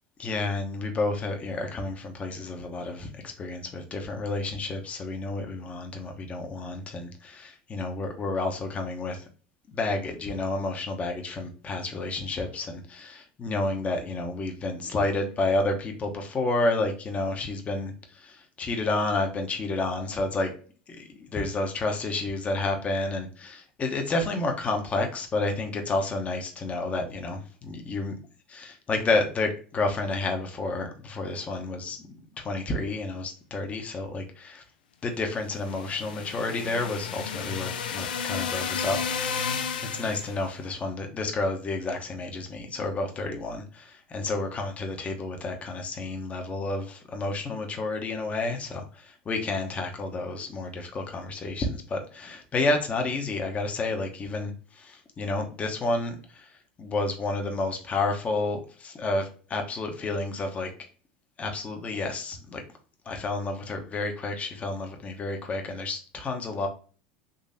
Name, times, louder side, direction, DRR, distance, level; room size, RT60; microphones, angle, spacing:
voice 1, 0.2-9.2 9.7-20.5 20.9-21.0 21.3-28.2 28.5-34.6 35.0-39.0 39.8-60.7 61.4-62.6 63.1-66.7, left 2 dB, 25° left, 4 dB, 0.8 m, -30 dB
sound 1, 35.5-40.5, left 6 dB, 90° left, 0.4 m, -32 dB
3.9 x 3.0 x 2.6 m, 0.39 s
hypercardioid pair, 100°, 5 cm